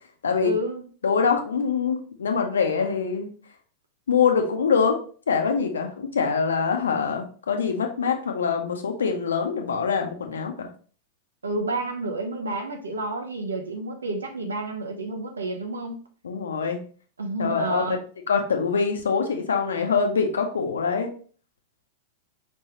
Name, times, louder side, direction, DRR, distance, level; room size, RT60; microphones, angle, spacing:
voice 1, 0.4-0.9 11.4-16.0 17.2-18.0, right 2 dB, 75° right, 4 dB, 0.8 m, -30 dB
voice 2, 1.0-3.3 4.1-5.0 5.3-10.7 16.2-16.8 17.4-18.0 18.3-21.1, left 5 dB, 70° left, 4 dB, 0.8 m, -24 dB
5.3 x 3.3 x 2.9 m, 0.42 s
figure-of-eight pair, 90°, 0 cm